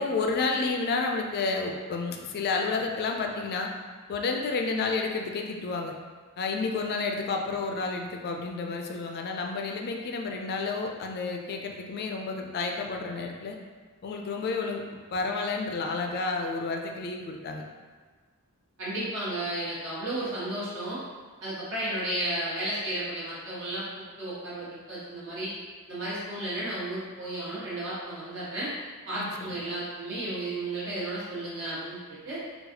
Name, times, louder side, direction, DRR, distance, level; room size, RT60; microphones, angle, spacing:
voice 1, 0.0-3.7 4.1-5.9 6.4-13.6 14.0-17.6 29.1-29.7, left 4 dB, 45° left, 2 dB, 0.3 m, -30 dB
voice 2, 18.8-21.0 21.4-25.5 25.9-28.7 29.1-32.0 32.2-32.4, right 1 dB, 60° right, -9 dB, 1.3 m, -33 dB
3.9 x 2.3 x 2.8 m, 1.5 s
head